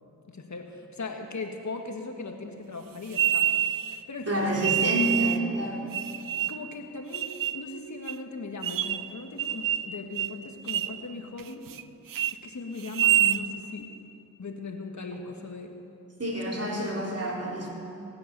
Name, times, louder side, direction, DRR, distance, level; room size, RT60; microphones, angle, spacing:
voice 1, 0.3-3.5 3.8-5.0 6.5-7.3 7.5-11.7 12.3-13.9 14.4-15.7, left 3 dB, 50° left, 3 dB, 1.7 m, -38 dB
sound 1, 3.1-4.0 4.6-5.4 5.9-6.7 7.1-7.6 8.1-8.2 8.6-9.1 9.4-9.9 10.2-10.4 10.7-11.0 11.4-11.8 12.1-12.3 12.8-13.4, right 11 dB, 65° right, 0.5 m, -26 dB
voice 2, 4.3-5.9 16.2-17.7, right 1 dB, 40° right, -3 dB, 4.0 m, -28 dB
18.0 x 9.1 x 6.9 m, 2.7 s
cardioid pair, 55°, 36 cm